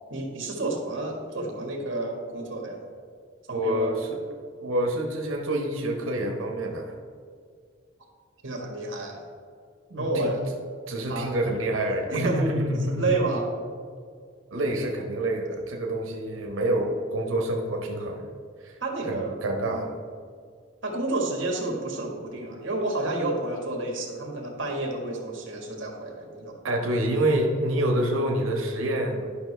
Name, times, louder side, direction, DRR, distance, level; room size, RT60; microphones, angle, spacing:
voice 1, 0.1-2.8 3.5-4.0 8.4-9.2 10.0-10.4 11.1-11.3 12.2-12.4 13.0-13.5 18.8-19.4 19.7-19.9 20.8-26.8, right 2 dB, 65° right, 1 dB, 1.6 m, -30 dB
voice 2, 3.5-4.2 4.6-6.9 9.9-10.4 10.9-13.2 14.5-18.3 18.6-18.7 19.0-19.9 26.6-29.3, right 1 dB, 85° right, 1 dB, 1.0 m, -27 dB
11.5 x 5.7 x 3.3 m, 2.1 s
head